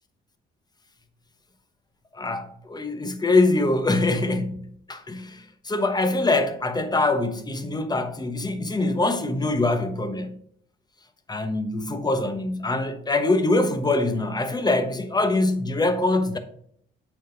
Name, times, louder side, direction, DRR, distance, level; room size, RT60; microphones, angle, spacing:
voice 1, 2.2-10.4 11.3-16.4, left 2 dB, 20° left, 1.1 m, -24 dB
8.3 x 4.1 x 5.2 m
cardioid pair, 90°, 20 cm